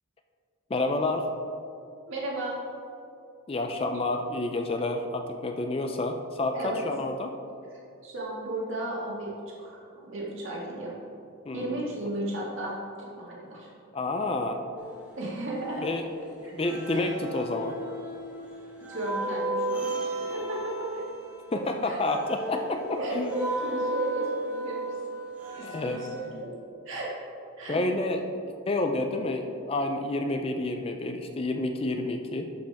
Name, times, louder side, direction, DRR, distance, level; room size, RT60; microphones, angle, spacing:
voice 1, 0.7-1.3 3.5-7.3 11.5-11.9 13.9-14.6 15.8-16.1 16.4-17.8 21.5-23.3 25.6-26.0 27.7-32.5, left 2 dB, 25° left, 5 dB, 0.4 m, -29 dB
voice 2, 2.1-2.6 6.5-6.8 8.0-10.9 11.5-13.7 15.2-15.9 16.4-16.5 18.9-21.0 21.5-22.0 22.7-25.0 25.5-26.5 26.9-27.1 27.6-27.8, right 1 dB, 60° right, -4 dB, 1.8 m, -34 dB
sound 1, 14.8-16.2 16.6-26.3, right 2 dB, 5° right, 0.8 m, -35 dB
11.0 x 5.1 x 3.5 m, 2.6 s
head